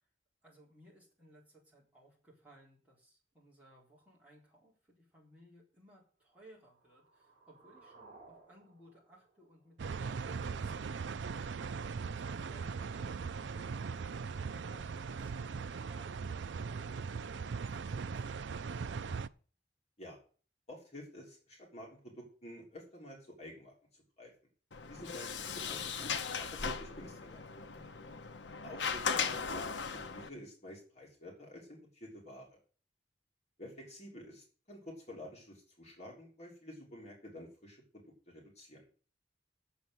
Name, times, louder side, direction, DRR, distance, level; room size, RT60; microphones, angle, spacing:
voice 1, 0.4-11.8 12.1-18.6 27.7-28.2, equal, 10° right, -5 dB, 4.1 m, -62 dB
sound 1, 6.4-10.4, right 3 dB, 30° right, 4.9 m, -61 dB
sound 2, 9.8-19.3, right 5 dB, 85° right, 0.5 m, -39 dB
voice 2, 20.7-24.3 24.9-27.4 28.6-32.6 33.6-38.8, equal, 35° left, -2 dB, 3.3 m, -50 dB
Sliding door, 24.7-30.3, left 6 dB, 85° left, 0.8 m, -38 dB
8.3 x 7.3 x 7.9 m, 0.41 s
head